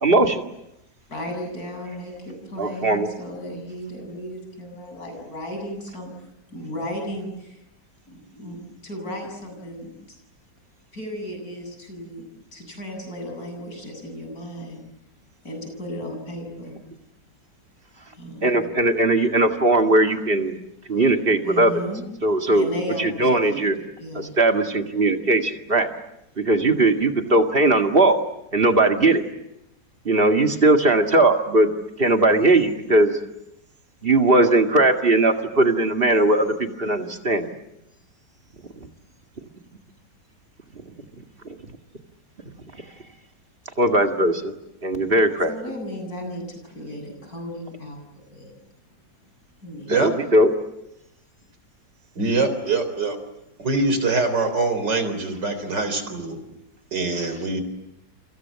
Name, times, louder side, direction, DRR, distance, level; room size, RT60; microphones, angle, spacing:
voice 1, 0.0-0.4 2.6-3.1 18.4-20.6 20.9-21.7 22.2-22.7 23.0-23.8 24.2-25.9 26.4-28.2 28.5-29.2 30.1-31.7 32.0-33.1 34.0-37.5 43.8-44.5 44.8-45.5 49.9-50.5, right 2 dB, 30° right, 4 dB, 2.3 m, -19 dB
voice 2, 1.1-7.6 8.1-9.9 10.9-14.8 15.4-16.8 18.0-18.7 21.4-22.0 22.5-24.3 45.5-48.5 49.6-50.0, equal, 60° left, 3 dB, 8.5 m, -35 dB
voice 3, 52.2-53.2 53.6-56.4 56.9-57.6, right 3 dB, 85° right, 9 dB, 4.5 m, -23 dB
30.0 x 25.5 x 7.6 m, 0.88 s
omnidirectional pair, 1.8 m